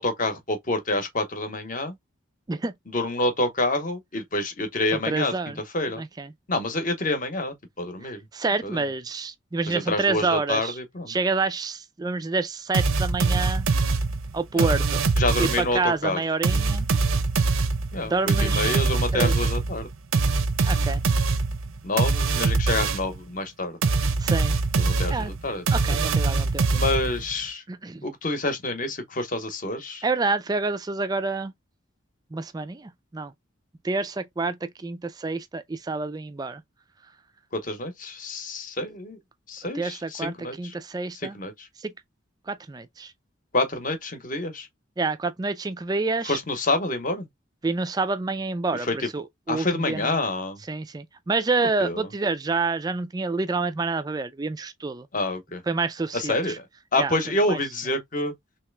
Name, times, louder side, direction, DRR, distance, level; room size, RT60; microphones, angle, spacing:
voice 1, 0.0-2.0 2.9-6.0 6.5-8.2 8.6-8.8 9.7-11.1 14.5-14.7 15.2-16.2 17.9-19.9 21.8-23.8 24.8-25.6 26.8-27.6 28.0-30.0 37.5-39.2 39.5-40.7 41.3-41.7 43.5-44.7 46.2-47.3 48.7-49.1 49.5-50.6 51.8-52.1 55.1-55.6 56.1-56.6 56.9-58.3, left 2 dB, 40° left, 0.8 m, -27 dB
voice 2, 4.9-5.6 6.0-6.3 8.0-10.8 11.1-13.7 14.3-15.1 15.4-16.9 18.0-18.8 19.1-19.3 20.6-21.0 24.2-24.6 25.1-25.3 25.7-26.8 27.7-28.0 30.0-31.5 32.3-33.3 33.8-36.6 39.7-41.4 41.8-41.9 42.5-43.1 45.0-46.4 47.6-50.2 50.7-55.1 55.7-56.6 57.0-57.1 57.5-57.6, right 3 dB, 20° right, 0.3 m, -28 dB
sound 1, 12.7-15.8 16.4-23.2 23.8-27.3, right 4 dB, 85° right, 0.6 m, -23 dB
3.2 x 3.0 x 3.2 m
head